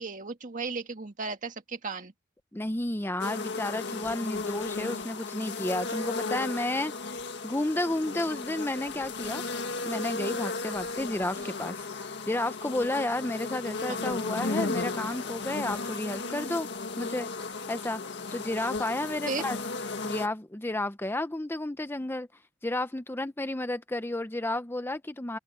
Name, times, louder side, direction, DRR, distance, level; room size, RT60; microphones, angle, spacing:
voice 1, 0.0-2.1 11.4-11.5 13.8-14.1 16.2-16.5 19.3-19.5, right 4 dB, 45° right, 1.9 m, -36 dB
voice 2, 2.5-9.4 9.8-16.7 17.0-17.3 17.7-19.6 20.0-22.3 22.6-25.4, left 1 dB, 10° left, 0.7 m, -32 dB
sound 1, 3.2-20.3, left 3 dB, 65° left, 1.9 m, -35 dB
open air
head